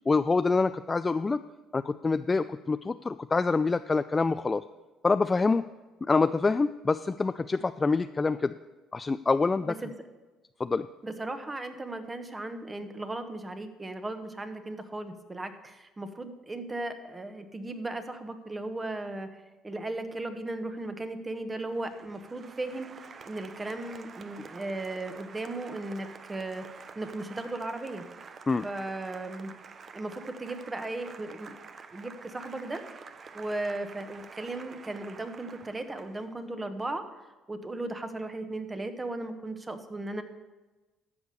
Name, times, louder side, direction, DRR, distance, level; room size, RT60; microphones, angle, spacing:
voice 1, 0.1-1.4 1.7-4.6 5.0-5.6 6.1-8.5 8.9-9.7 10.6-10.9 28.5-28.6, left 4 dB, 25° left, 11 dB, 0.3 m, -26 dB
voice 2, 11.0-19.3 19.6-26.7 26.9-28.0 28.6-29.5 29.9-31.6 31.9-32.8 33.3-37.0 37.5-40.2, right 2 dB, 20° right, 8 dB, 1.2 m, -36 dB
Applause, 21.6-36.4, right 5 dB, 40° right, 0.7 m, -48 dB
13.5 x 5.0 x 6.9 m, 1.2 s
supercardioid pair, 80°, 0 cm